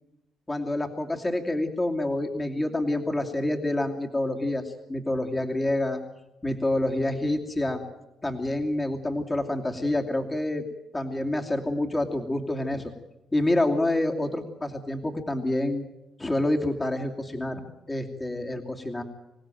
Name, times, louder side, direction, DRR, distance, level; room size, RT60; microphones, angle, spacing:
voice 1, 0.5-6.0 6.4-7.8 8.2-10.6 10.9-12.9 13.3-15.8 16.2-17.6 17.9-19.0, left 1 dB, 20° left, 1 dB, 2.7 m, -27 dB
26.0 x 17.0 x 9.2 m, 0.94 s
cardioid pair, 90°, 0 cm